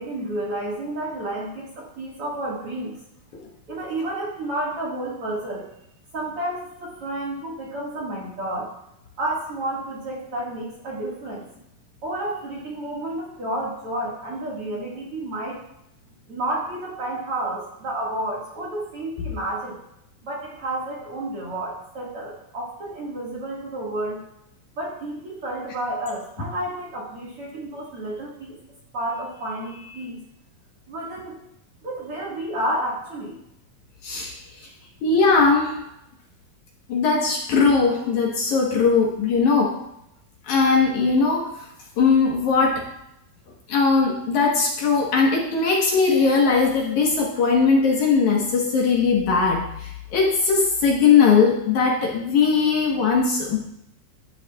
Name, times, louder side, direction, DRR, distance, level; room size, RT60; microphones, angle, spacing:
voice 1, 0.0-2.9 3.7-5.6 6.1-8.7 9.2-11.4 12.0-15.6 16.3-19.8 20.2-24.2 24.8-28.6 28.9-30.2 30.9-31.3 31.8-33.4, right 1 dB, 45° right, -5 dB, 2.3 m, -30 dB
voice 2, 34.0-34.4 35.0-35.7 36.9-39.7 40.5-41.5 42.0-42.8 43.7-53.7, left 5 dB, 60° left, -1 dB, 2.3 m, -19 dB
12.5 x 9.7 x 2.4 m, 0.81 s
omnidirectional pair, 4.3 m